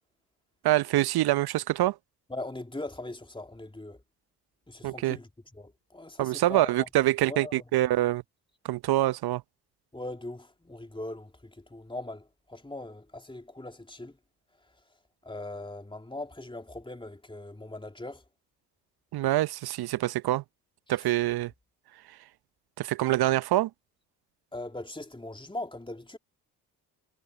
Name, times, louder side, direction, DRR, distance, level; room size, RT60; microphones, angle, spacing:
voice 1, 0.6-2.0 4.8-5.2 6.2-8.2 8.6-9.4 19.1-20.4 20.9-21.5 22.8-23.7, right 15 dB, 55° right, 0.8 m, -25 dB
voice 2, 2.3-4.0 4.7-5.3 5.5-6.9 7.3-7.6 9.9-14.2 15.2-18.2 24.5-26.2, left 2 dB, 10° left, 2.8 m, -40 dB
hypercardioid pair, 45°, 46 cm